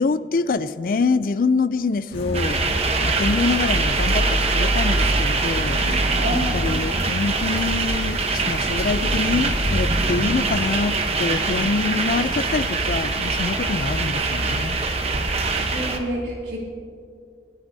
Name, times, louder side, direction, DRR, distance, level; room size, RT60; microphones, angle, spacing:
voice 1, 0.0-2.6 3.0-5.8 6.3-14.8, left 4 dB, 50° left, 14 dB, 0.4 m, -25 dB
sound 1, 2.1-10.1, equal, 75° left, 2.0 m, -27 dB
sound 2, 2.3-16.0, right 3 dB, 35° right, 0.9 m, -24 dB
voice 2, 6.2-6.5 15.3-16.6, equal, 75° right, -5 dB, 3.2 m, -28 dB
25.0 x 9.6 x 2.7 m, 2.4 s
head